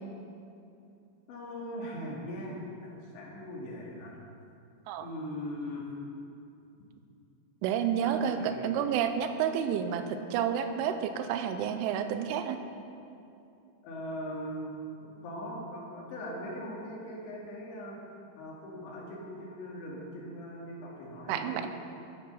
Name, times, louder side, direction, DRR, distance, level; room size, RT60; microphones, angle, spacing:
voice 1, 1.3-4.2 5.0-5.8 8.0-8.8 13.8-18.0 18.3-21.7, equal, 70° left, -3 dB, 4.5 m, -40 dB
voice 2, 7.6-12.6 21.3-21.7, right 8 dB, 90° right, 8 dB, 3.1 m, -30 dB
13.0 x 10.5 x 5.5 m, 2.6 s
omnidirectional pair, 5.6 m